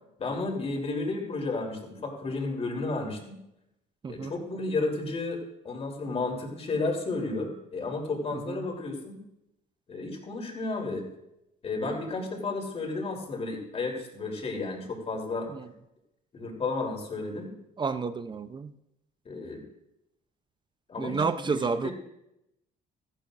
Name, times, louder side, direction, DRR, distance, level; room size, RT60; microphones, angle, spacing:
voice 1, 0.2-3.4 4.1-9.2 9.9-11.1 11.6-15.5 16.3-17.5 19.3-19.6 20.9-21.9, left 3 dB, 35° left, 1 dB, 3.4 m, -32 dB
voice 2, 4.0-4.3 8.3-8.6 11.9-12.0 15.5-15.7 17.8-18.7 21.0-21.9, right 5 dB, 25° right, 11 dB, 0.6 m, -30 dB
16.5 x 14.0 x 2.6 m, 0.85 s
cardioid pair, 110°, 17 cm